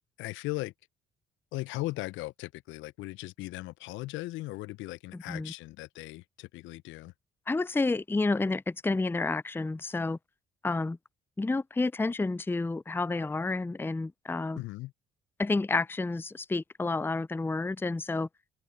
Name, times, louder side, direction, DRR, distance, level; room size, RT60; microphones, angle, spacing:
voice 1, 0.2-0.7 1.5-7.1 14.6-14.9, left 19 dB, 70° left, 0.8 m, -38 dB
voice 2, 7.5-10.2 10.6-11.0 11.4-14.6 15.4-18.3, left 3 dB, 10° left, 0.5 m, -30 dB
open air
hypercardioid pair, 50°, 20 cm